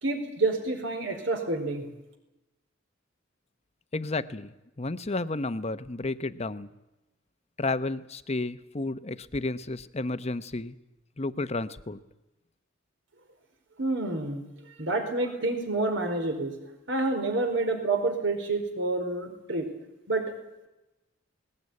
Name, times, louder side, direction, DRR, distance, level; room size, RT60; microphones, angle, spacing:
voice 1, 0.0-1.9 13.8-14.4 14.8-16.5 16.9-19.7 20.1-20.3, right 2 dB, 65° right, 5 dB, 4.6 m, -28 dB
voice 2, 3.9-6.7 7.6-10.7 11.2-12.0, left 2 dB, 35° left, 12 dB, 0.9 m, -32 dB
20.0 x 19.0 x 9.7 m, 0.97 s
head